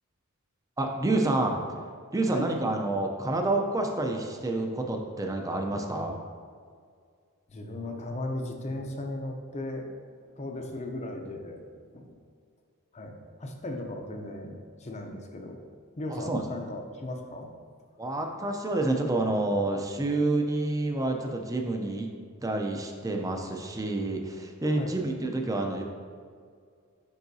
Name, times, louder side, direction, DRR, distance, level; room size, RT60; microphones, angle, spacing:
voice 1, 0.8-1.6 2.1-6.2 16.1-16.4 18.0-22.1 22.4-25.8, right 2 dB, 15° right, 2 dB, 0.5 m, -28 dB
voice 2, 7.5-9.9 10.3-11.6 11.9-12.1 12.9-15.6 16.0-17.5 24.7-24.9, left 1 dB, 30° left, 3 dB, 0.6 m, -36 dB
9.5 x 3.8 x 2.7 m, 2.1 s
head